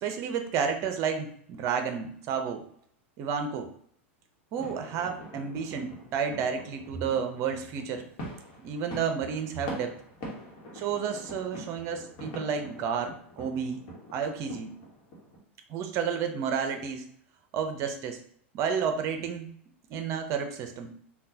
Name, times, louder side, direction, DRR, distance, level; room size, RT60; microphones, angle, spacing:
voice 1, 0.0-2.7 3.2-3.7 4.5-8.0 8.6-10.0 10.7-13.8 14.1-14.7 15.7-17.1 17.5-18.2 18.5-19.5 19.9-20.9, right 6 dB, 45° right, 6 dB, 0.6 m, -31 dB
sound 1, 4.5-15.4, equal, 50° left, 1.1 m, -44 dB
3.7 x 2.2 x 2.7 m, 0.62 s
hypercardioid pair, 100°, 7 cm